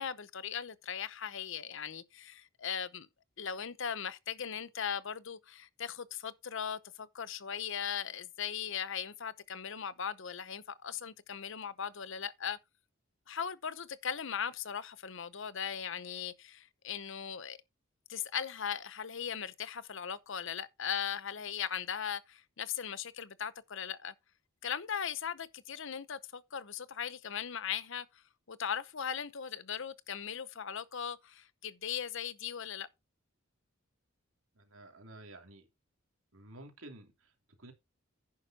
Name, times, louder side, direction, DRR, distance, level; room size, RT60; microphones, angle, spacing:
voice 1, 0.0-3.1 3.4-12.6 13.3-17.6 18.1-24.1 24.6-28.1 28.5-32.9, left 8 dB, 65° left, 0.8 m, -38 dB
voice 2, 34.5-35.7 36.3-37.7, right 1 dB, 80° right, 3.0 m, -52 dB
10.5 x 9.4 x 2.9 m
head